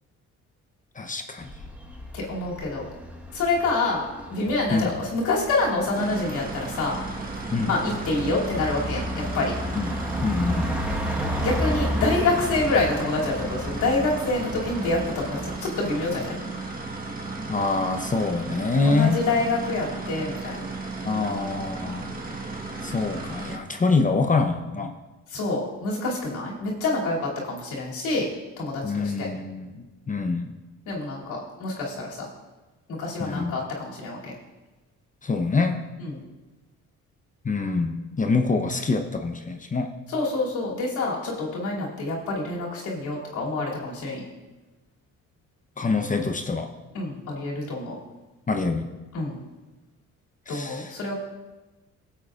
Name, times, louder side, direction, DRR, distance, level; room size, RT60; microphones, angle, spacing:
voice 1, 1.0-1.5 4.7-4.9 7.5-7.7 9.7-10.6 17.5-19.2 21.0-22.1 22.8-24.9 28.8-30.5 33.2-33.5 35.2-35.8 37.4-39.9 45.8-46.7 48.5-48.9 50.5-50.9, left 3 dB, 25° left, 5 dB, 0.8 m, -25 dB
sound 1, 1.4-15.6, equal, 5° right, 1.3 m, -33 dB
voice 2, 2.1-2.8 3.3-4.0 4.3-7.0 7.6-9.5 11.4-16.4 18.8-20.7 25.3-28.3 28.6-29.3 30.9-32.3 33.0-34.3 36.0-36.2 40.1-44.3 46.9-48.0 49.1-49.4 50.5-51.1, left 2 dB, 80° left, -4 dB, 2.8 m, -27 dB
sound 2, 5.9-23.6, right 3 dB, 30° right, 1.3 m, -34 dB
19.5 x 7.7 x 2.5 m, 1.1 s
cardioid pair, 90°, 30 cm